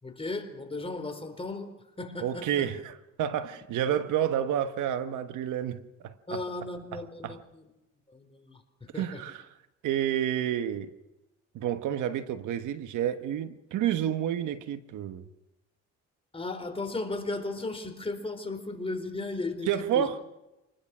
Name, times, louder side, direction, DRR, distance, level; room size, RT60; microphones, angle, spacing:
voice 1, 0.0-1.7 2.0-2.7 6.3-7.7 8.1-9.2 16.3-20.1, left 2 dB, 20° left, 4.2 m, -36 dB
voice 2, 2.2-6.4 6.9-7.4 8.9-9.4 9.8-10.9 11.5-15.2 19.7-20.2, right 10 dB, 85° right, 1.3 m, -30 dB
27.0 x 20.5 x 6.2 m
cardioid pair, 90°, 30 cm